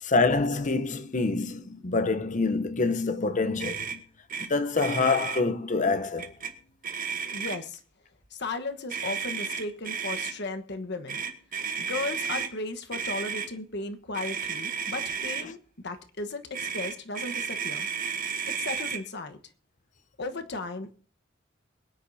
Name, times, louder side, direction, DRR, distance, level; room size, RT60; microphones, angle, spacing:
voice 1, 0.0-4.0 4.4-6.3, left 3 dB, 40° left, 0.8 m, -26 dB
Motor vehicle (road), 3.6-4.0 4.3-4.5 4.7-5.4 6.2-6.5 6.8-7.7 8.9-10.3 11.1-12.5 12.9-13.5 14.1-15.5 16.5-19.0, right 6 dB, 45° right, 1.5 m, -33 dB
voice 2, 7.3-7.8 8.3-11.2 11.8-15.6 15.8-17.9 18.6-19.4 20.2-20.9, left 3 dB, 60° left, 1.2 m, -35 dB
22.5 x 10.0 x 2.7 m
head